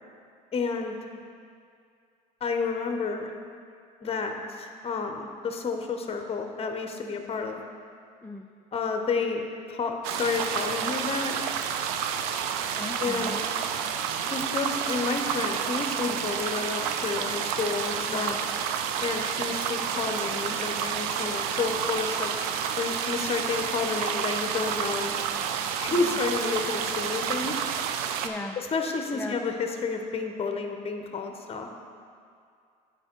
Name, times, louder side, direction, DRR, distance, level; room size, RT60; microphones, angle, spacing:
voice 1, 0.5-0.9 2.4-3.3 4.0-7.6 8.7-11.4 13.0-13.4 14.3-18.4 19.0-22.3 22.8-25.1 25.8-27.6 28.6-31.7, left 4 dB, 30° left, 4 dB, 0.8 m, -30 dB
sound 1, 10.0-28.3, right 8 dB, 85° right, 0.5 m, -30 dB
voice 2, 12.8-13.4 18.1-18.4 25.9-26.2 28.2-28.6 29.1-29.4, left 2 dB, 10° left, 2 dB, 0.4 m, -37 dB
8.9 x 4.6 x 4.4 m, 2.3 s
supercardioid pair, 75°, 19 cm